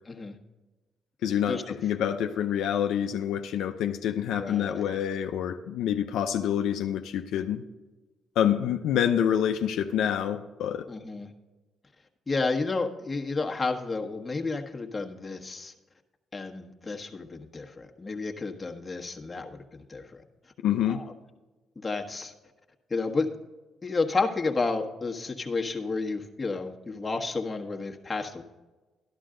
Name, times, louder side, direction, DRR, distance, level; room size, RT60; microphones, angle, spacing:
voice 1, 1.2-7.6 8.4-10.9 20.6-21.0, left 9 dB, 85° left, 0.6 m, -27 dB
voice 2, 4.3-4.9 10.9-11.3 12.3-15.7 16.3-20.2 20.9-21.1 21.7-22.3 22.9-23.3 23.8-28.4, left 3 dB, 25° left, 1.3 m, -31 dB
12.5 x 11.5 x 3.8 m
cardioid pair, 90°, 0 cm